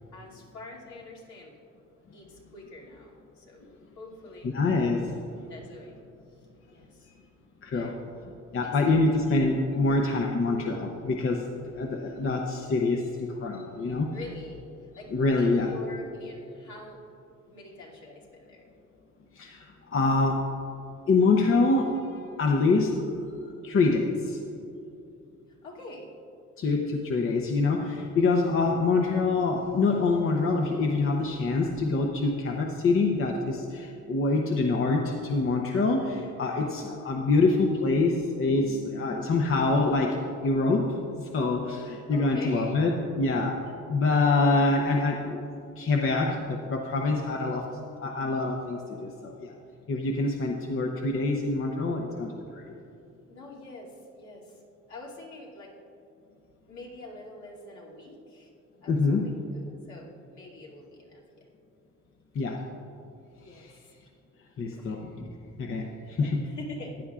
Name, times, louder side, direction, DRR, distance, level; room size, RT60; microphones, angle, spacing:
voice 1, 0.1-1.6 2.1-3.6 3.9-4.5 5.5-6.0 6.3-7.1 7.7-8.0 8.9-9.2 9.7-9.8 14.1-17.0 17.5-18.7 25.6-26.1 36.6-36.7 42.1-42.8 53.3-54.6 54.9-55.7 56.7-58.5 58.8-61.2 63.4-63.9 64.7-65.0 66.2-67.0, left 2 dB, 70° left, -5 dB, 2.7 m, -45 dB
voice 2, 4.5-5.1 7.1-7.2 7.6-8.0 8.5-14.1 15.1-15.7 19.3-20.5 21.1-22.9 23.6-24.4 26.6-45.5 45.8-49.5 49.9-52.6 58.9-59.3 62.3-62.6 63.5-63.7 64.6-65.3 65.6-66.4, left 3 dB, 45° left, 1 dB, 0.8 m, -26 dB
15.0 x 10.0 x 2.4 m, 2.7 s
cardioid pair, 90°, 30 cm